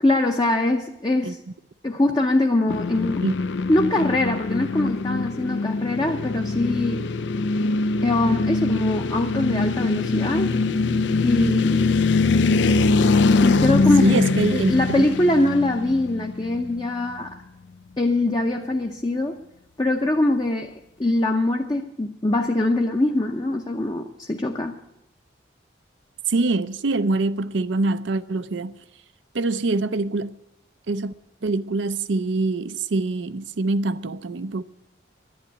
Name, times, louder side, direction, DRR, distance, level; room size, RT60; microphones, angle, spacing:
voice 1, 0.0-1.4 1.8-3.2 3.7-7.0 8.0-10.5 11.2-12.0 13.4-14.2 14.5-17.3 18.0-19.4 19.8-20.7 21.0-24.8, left 2 dB, 20° left, 0.7 m, -22 dB
sound 1, 2.7-16.9, left 3 dB, 70° left, 0.5 m, -23 dB
voice 2, 14.0-15.1 26.3-28.7 29.3-30.4 30.9-31.1 31.4-34.6, right 3 dB, 75° right, 0.6 m, -24 dB
11.0 x 10.5 x 9.7 m
head